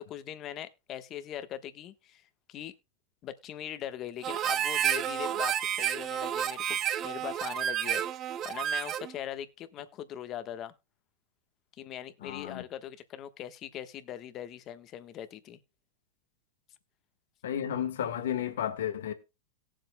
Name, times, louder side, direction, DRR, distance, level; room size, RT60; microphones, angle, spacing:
voice 1, 0.0-2.2 2.5-2.7 3.2-6.8 7.0-8.0 8.4-10.7 11.8-15.6, left 11 dB, 40° left, 1.2 m, -41 dB
Harmonica, 4.2-9.1, right 10 dB, 35° right, 0.7 m, -30 dB
voice 2, 12.2-12.6 17.4-19.1, left 9 dB, 75° left, 1.5 m, -32 dB
18.0 x 7.7 x 2.2 m
hypercardioid pair, 110°, 0 cm